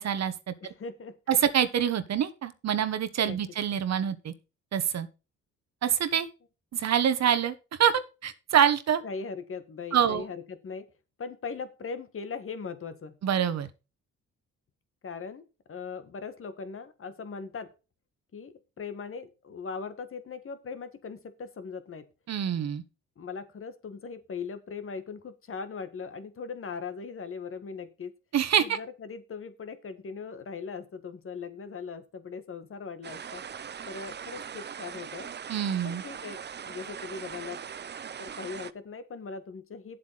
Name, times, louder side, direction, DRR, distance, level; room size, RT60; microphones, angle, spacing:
voice 1, 0.0-0.5 1.3-4.3 4.7-5.1 5.8-6.3 6.7-7.5 7.8-9.0 9.9-10.2 13.2-13.7 22.3-22.8 28.3-28.8 35.5-36.0, right 9 dB, 60° right, 1.3 m, -26 dB
voice 2, 0.6-1.1 3.2-3.4 9.0-10.9 11.2-13.2 15.0-17.7 18.3-22.1 23.2-28.1 28.6-33.4 33.9-35.3 35.8-37.6 38.2-40.0, left 5 dB, 45° left, 1.7 m, -39 dB
sound 1, 33.0-38.7, right 7 dB, 35° right, 0.7 m, -40 dB
9.5 x 7.8 x 4.1 m
cardioid pair, 90°, 30 cm